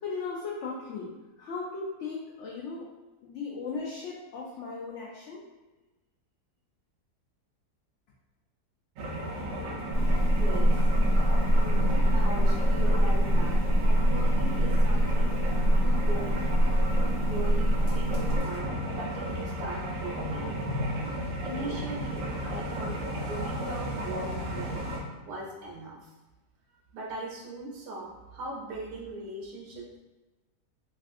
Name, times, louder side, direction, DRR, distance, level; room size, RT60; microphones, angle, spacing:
voice 1, 0.0-1.1 1.4-2.9 3.2-5.4, left 4 dB, 85° left, -4 dB, 0.6 m, -37 dB
sound 1, 9.0-25.0, equal, 65° right, 0.9 m, -34 dB
sound 2, 9.9-18.4, equal, 30° left, 0.8 m, -24 dB
voice 2, 10.3-10.9 11.6-15.4 15.8-16.5 17.1-18.7 19.0-20.5 21.4-24.8 25.3-26.1 26.9-30.0, right 2 dB, 80° right, -2 dB, 1.3 m, -40 dB
3.4 x 2.5 x 2.4 m, 1.1 s
omnidirectional pair, 1.8 m